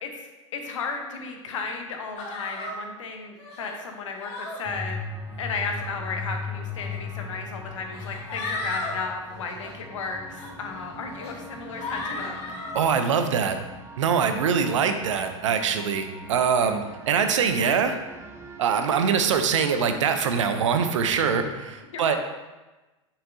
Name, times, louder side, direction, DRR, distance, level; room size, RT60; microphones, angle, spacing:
voice 1, 0.0-5.0 5.4-12.6 21.9-22.2, left 4 dB, 70° left, 3 dB, 1.0 m, -34 dB
sound 1, 2.2-2.8 3.4-3.7 4.2-4.6 5.5-5.9 6.9-7.0 7.9-8.9 9.3-9.7 10.3-10.5 11.1-11.3 11.8-12.9, left 2 dB, 40° left, 1.6 m, -34 dB
sound 2, 4.7-21.5, left 2 dB, 15° right, 0.7 m, -40 dB
voice 2, 12.7-13.6 14.0-18.0 18.6-22.2, right 6 dB, 70° right, 8 dB, 0.6 m, -23 dB
6.5 x 5.6 x 2.7 m, 1.1 s
figure-of-eight pair, 90°, 16 cm